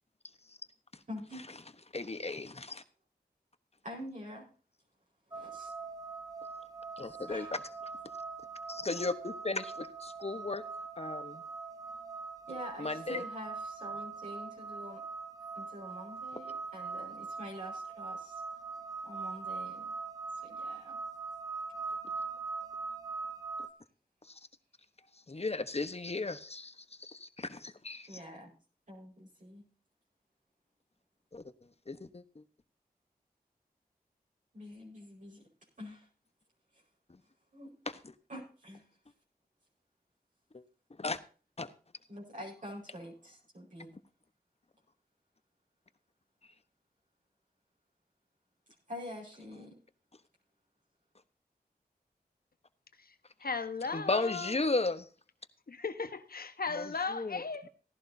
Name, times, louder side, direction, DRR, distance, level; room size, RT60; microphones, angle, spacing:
voice 1, 1.1-1.4 3.8-4.5 5.3-5.7 7.3-7.5 12.5-15.0 15.5-18.4 19.0-19.9 20.4-21.0 28.1-28.5 28.9-29.6 34.5-35.4 35.8-36.1 37.5-37.7 38.3-38.8 42.1-43.9 48.9-49.8, equal, 50° right, 5.0 m, -46 dB
voice 2, 1.9-2.8 7.0-7.6 8.7-10.6 11.0-11.4 12.8-13.2 24.2-24.5 25.1-28.2 31.3-31.4 31.9-32.4 37.1-37.2 37.9-38.0 40.5-40.6 40.9-41.2 41.6-41.7 53.9-55.1 56.7-57.4, left 3 dB, 40° left, 1.1 m, -35 dB
sound 1, 5.3-23.7, right 4 dB, 20° right, 1.5 m, -42 dB
voice 3, 53.4-54.7 55.7-57.7, left 4 dB, 65° left, 1.3 m, -37 dB
17.0 x 11.5 x 2.8 m
cardioid pair, 40°, 16 cm